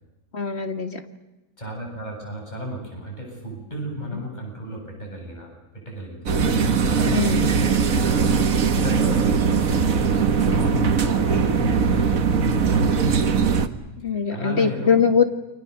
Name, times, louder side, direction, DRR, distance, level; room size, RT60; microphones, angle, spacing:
voice 1, 0.3-1.0 4.1-4.2 7.1-7.5 14.0-15.2, left 6 dB, 40° left, 7 dB, 2.1 m, -22 dB
voice 2, 1.6-6.5 6.9-8.3 8.7-13.3 14.3-15.0, right 1 dB, 25° left, 0 dB, 8.2 m, -33 dB
sound 1, 6.3-13.7, right 5 dB, 60° right, 1.7 m, -20 dB
29.5 x 25.0 x 6.9 m, 1.0 s
omnidirectional pair, 1.7 m